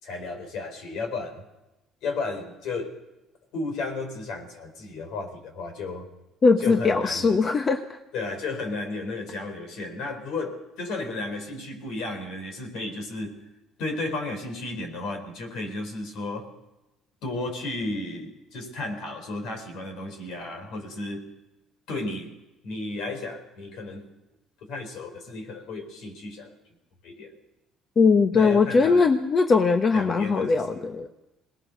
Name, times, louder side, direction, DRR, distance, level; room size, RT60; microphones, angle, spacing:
voice 1, 0.0-1.5 2.0-3.0 3.5-6.1 6.6-7.4 8.1-13.4 13.8-16.5 17.2-21.3 21.9-22.3 22.6-24.1 24.6-26.5 27.0-27.3 28.3-29.1 29.9-30.8, left 2 dB, 75° left, 6 dB, 4.6 m, -33 dB
voice 2, 6.4-7.8 28.0-31.1, left 4 dB, 40° left, 7 dB, 1.2 m, -20 dB
22.5 x 18.5 x 6.7 m, 0.98 s
supercardioid pair, 80°, 0 cm